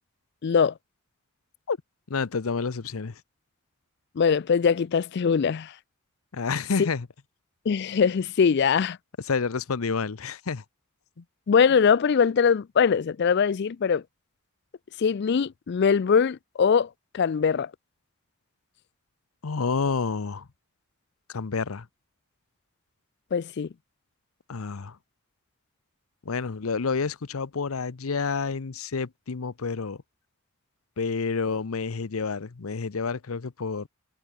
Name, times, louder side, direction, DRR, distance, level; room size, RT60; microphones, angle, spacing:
voice 1, 0.4-0.7 4.2-5.7 6.8-6.9 7.7-9.0 11.5-14.0 15.0-17.7 23.3-23.7, left 6 dB, 55° left, 0.4 m, -22 dB
voice 2, 2.1-3.2 6.3-7.1 9.3-10.6 11.2-11.3 19.4-20.5 21.3-21.9 24.5-25.0 26.3-30.0 31.0-33.9, left 4 dB, 85° left, 0.7 m, -29 dB
head